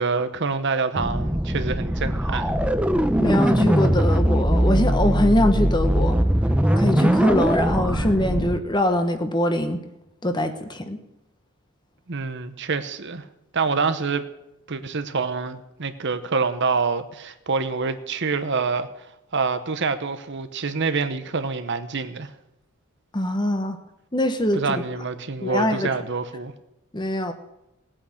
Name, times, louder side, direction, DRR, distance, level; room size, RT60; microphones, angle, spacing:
voice 1, 0.0-2.5 12.1-13.2 13.5-14.2 14.7-19.1 19.3-22.3 24.5-26.5, right 4 dB, 55° right, 0.9 m, -26 dB
sound 1, 1.0-8.6, equal, 5° right, 0.7 m, -21 dB
voice 2, 3.2-6.2 6.8-9.8 10.2-11.0 23.1-23.8 24.1-24.6 25.4-25.9 26.9-27.3, left 1 dB, 20° left, 1.1 m, -22 dB
18.0 x 8.8 x 6.5 m
head